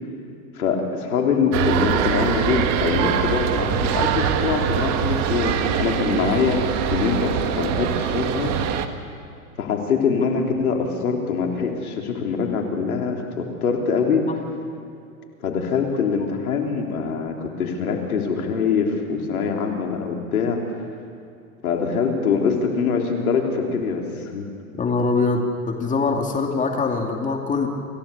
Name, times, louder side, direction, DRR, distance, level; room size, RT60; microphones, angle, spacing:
voice 1, 0.6-6.7 6.9-8.5 9.6-14.3 15.4-20.6 21.6-24.5, left 5 dB, 80° left, 2 dB, 3.5 m, -23 dB
sound 1, 1.5-8.9, right 8 dB, 35° right, 1.6 m, -23 dB
voice 2, 24.8-27.7, left 4 dB, 15° left, 2 dB, 2.5 m, -23 dB
27.5 x 16.5 x 6.9 m, 2.5 s
hypercardioid pair, 115°, 43 cm